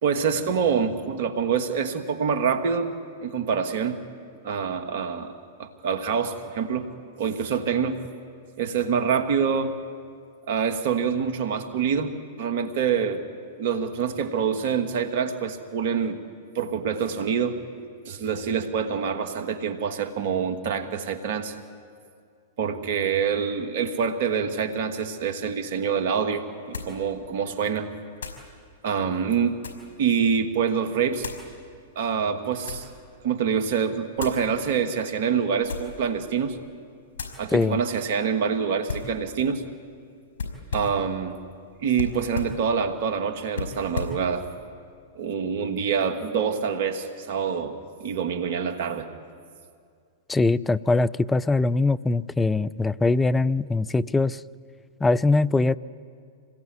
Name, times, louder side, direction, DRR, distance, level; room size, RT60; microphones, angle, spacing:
voice 1, 0.0-2.9 3.2-4.0 4.4-6.9 7.2-8.0 8.6-9.8 10.5-13.2 13.6-16.2 16.5-17.6 18.0-21.6 22.6-27.9 28.8-29.6 30.0-31.3 32.0-32.9 33.2-36.6 37.4-39.6 40.7-41.4 41.8-44.5 45.2-49.1, right 6 dB, 60° right, 7 dB, 2.5 m, -26 dB
sound 1, 25.6-25.7 26.7-27.0 28.2-28.5 29.2-30.0 31.2-31.5 32.3-32.9 34.2-34.5 35.6-36.0 36.5-36.7 37.1-37.4 38.9-39.2 40.4-41.0 41.9-42.6 43.5-44.2, left 4 dB, 75° left, 5.7 m, -34 dB
voice 2, 50.3-54.4 55.0-55.8, left 3 dB, 10° left, 19 dB, 0.6 m, -22 dB
27.0 x 20.5 x 9.6 m, 2.2 s
hypercardioid pair, 110°, 0 cm